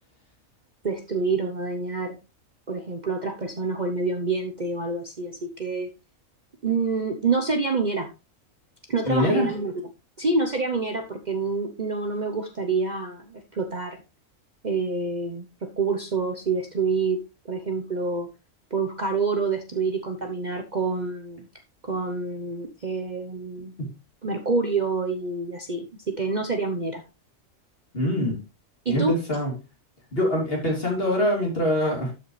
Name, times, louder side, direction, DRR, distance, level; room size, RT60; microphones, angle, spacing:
voice 1, 0.8-2.1 2.7-5.9 6.6-8.1 8.9-9.7 10.2-14.0 14.6-17.2 17.5-18.3 18.7-21.5 21.8-23.7 24.2-27.0 28.8-29.1, right 4 dB, 35° right, 4 dB, 0.9 m, -27 dB
voice 2, 9.1-9.5 23.8-23.9 27.9-28.4 28.9-29.5 30.1-32.1, left 1 dB, 45° left, -1 dB, 3.3 m, -24 dB
12.5 x 5.7 x 3.2 m, 0.28 s
omnidirectional pair, 1.4 m